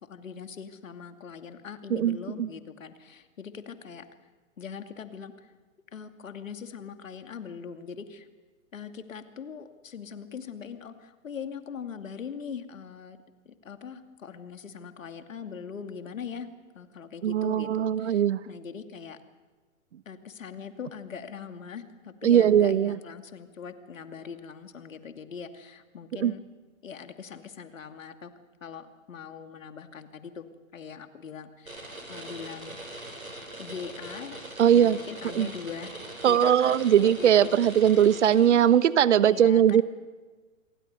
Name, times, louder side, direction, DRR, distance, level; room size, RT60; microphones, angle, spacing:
voice 1, 0.0-4.1 4.6-5.5 5.9-8.3 8.7-13.2 13.5-16.5 16.7-19.2 20.1-26.4 26.8-28.3 28.6-30.5 30.7-31.8 32.1-32.8 33.6-34.4 34.7-36.0 36.2-38.1 39.2-39.8, left 6 dB, 70° left, 8 dB, 2.5 m, -41 dB
voice 2, 1.9-2.5 17.2-18.4 22.2-23.0 26.2-26.3 34.6-35.0 35.4-35.5 36.2-39.8, right 9 dB, 55° right, 17 dB, 1.1 m, -20 dB
sound 1, 31.7-38.9, right 1 dB, 90° right, 7.0 m, -42 dB
27.0 x 23.5 x 6.8 m, 1.3 s
figure-of-eight pair, 120°, 41 cm